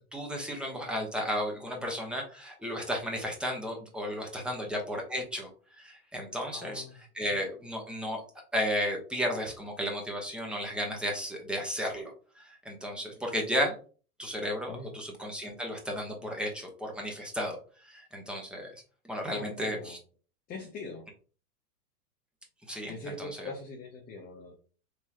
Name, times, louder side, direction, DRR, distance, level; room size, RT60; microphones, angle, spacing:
voice 1, 0.1-5.5 5.8-6.8 7.1-8.2 8.5-13.7 14.2-17.6 17.8-18.7 19.0-20.0 22.7-23.5, equal, ahead, 1 dB, 0.9 m, -34 dB
voice 2, 6.5-7.0 14.7-14.9 19.3-20.0 20.5-21.0 22.9-24.5, left 3 dB, 20° left, 0 dB, 0.6 m, -42 dB
3.7 x 3.0 x 2.8 m, 0.39 s
hypercardioid pair, 115°, 45 cm